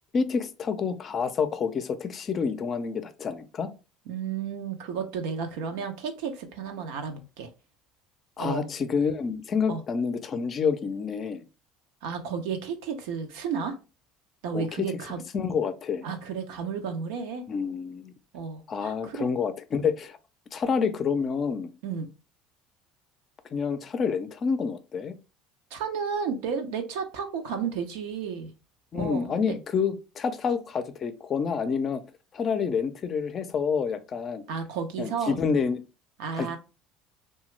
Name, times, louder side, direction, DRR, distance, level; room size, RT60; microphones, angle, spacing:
voice 1, 0.1-3.7 8.4-11.5 14.5-14.9 15.3-16.0 17.5-18.1 18.7-20.2 20.5-21.7 23.5-25.1 28.9-32.0 32.3-34.4 35.0-35.8 36.3-36.6, left 6 dB, 40° left, 0.4 m, -28 dB
voice 2, 4.1-7.5 8.4-8.7 9.7-9.8 12.0-13.8 14.4-15.2 16.0-17.4 18.3-19.3 21.8-22.1 25.7-28.5 28.9-29.6 34.5-35.4 36.2-36.6, right 6 dB, 85° right, 0.6 m, -32 dB
2.8 x 2.2 x 3.1 m
supercardioid pair, 95°, 0 cm